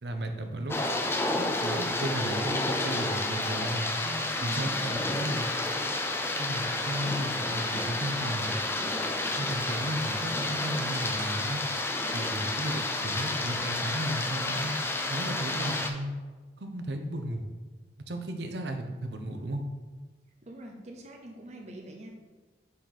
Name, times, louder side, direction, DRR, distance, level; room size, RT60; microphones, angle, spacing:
voice 1, 0.0-0.8 1.4-5.5 6.4-8.6 9.4-11.6 12.1-14.7 15.1-16.1 16.6-17.4 18.1-19.6, right 1 dB, 80° right, 6 dB, 0.8 m, -34 dB
sound 1, 0.7-15.9, left 2 dB, 15° left, 0.4 m, -30 dB
voice 2, 20.4-22.1, right 1 dB, 40° right, 2 dB, 0.7 m, -45 dB
7.2 x 3.9 x 4.2 m, 1.3 s
head